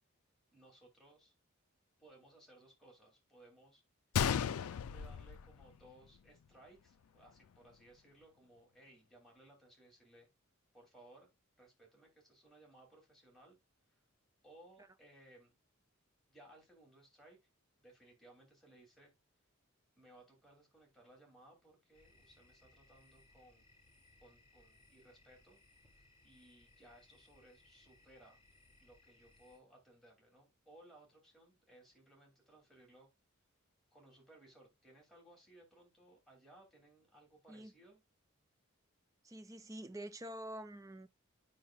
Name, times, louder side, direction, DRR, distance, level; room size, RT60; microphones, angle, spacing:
voice 1, 0.5-1.3 2.0-3.8 4.3-10.3 10.7-11.3 11.6-13.6 13.9-14.0 14.4-15.6 16.3-17.5 17.8-19.1 20.0-23.7 24.2-25.6 26.2-28.4 28.8-33.1 33.9-38.0, right 1 dB, ahead, 2.4 m, -62 dB
Gunshot gunfire, 4.1-6.2 6.5-6.6 7.2-7.4, left 8 dB, 90° left, 0.4 m, -35 dB
sound 1, 21.9-29.6, left 2 dB, 25° left, 3.5 m, -67 dB
voice 2, 39.2-41.1, right 1 dB, 15° right, 0.5 m, -47 dB
10.0 x 5.7 x 2.3 m
head